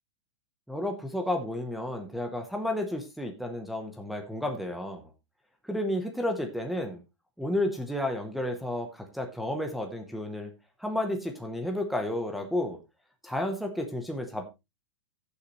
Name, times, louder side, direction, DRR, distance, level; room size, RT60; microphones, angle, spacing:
voice 1, 0.7-5.1 5.6-7.0 7.4-10.5 10.8-12.8 13.2-14.4, left 1 dB, ahead, 3 dB, 0.8 m, -32 dB
15.0 x 7.0 x 3.0 m, 0.24 s
supercardioid pair, 175°, 16 cm